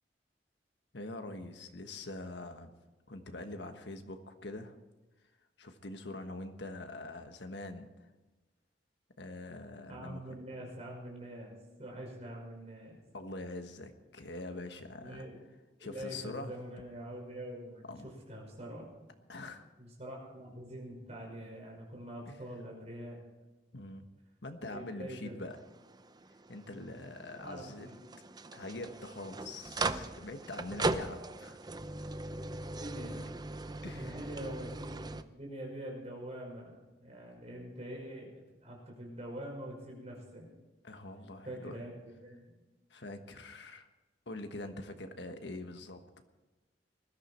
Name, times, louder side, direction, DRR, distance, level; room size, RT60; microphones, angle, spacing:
voice 1, 0.9-2.7 3.1-4.7 5.6-7.9 9.2-10.4 13.1-15.3 15.8-16.5 17.9-18.1 19.3-19.7 22.3-22.4 23.7-24.1 24.4-25.6 26.5-27.9 28.5-31.6 33.8-34.3 40.8-41.8 42.9-43.9 44.3-46.2, left 2 dB, 85° left, 7 dB, 1.4 m, -44 dB
voice 2, 9.9-13.0 15.0-15.4 15.8-17.9 18.3-18.9 19.8-23.1 24.7-25.4 27.4-28.0 32.5-33.3 33.9-40.5 41.4-42.5, right 1 dB, 40° right, 0 dB, 5.5 m, -45 dB
sound 1, 25.5-35.2, right 3 dB, 25° right, 0.6 m, -39 dB
20.0 x 13.0 x 4.4 m, 1.2 s
head